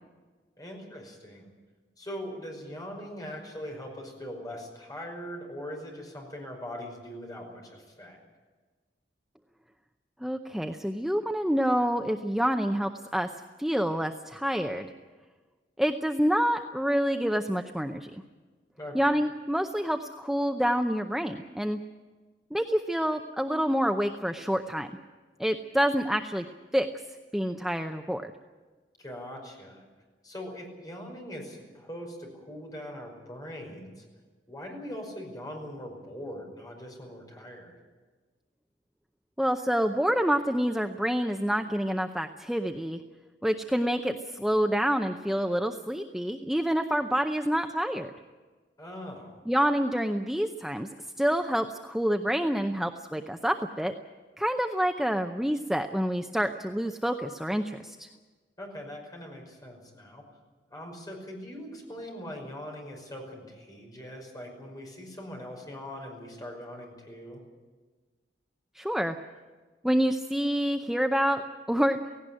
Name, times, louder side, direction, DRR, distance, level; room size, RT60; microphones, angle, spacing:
voice 1, 0.6-1.5 2.0-8.2 18.8-19.1 29.0-29.8 30.2-34.0 34.5-37.8 48.8-49.4 58.6-60.2 60.7-67.4, equal, 20° left, 1 dB, 5.4 m, -41 dB
voice 2, 10.2-13.3 13.6-14.9 15.8-18.2 18.9-21.8 22.5-24.9 25.4-26.4 26.7-26.9 27.3-28.3 39.4-43.0 43.4-48.1 49.5-50.9 51.2-53.9 54.4-58.1 68.7-69.2 69.8-71.4 71.7-72.0, equal, ahead, 5 dB, 0.6 m, -27 dB
17.5 x 17.0 x 9.9 m, 1.4 s
head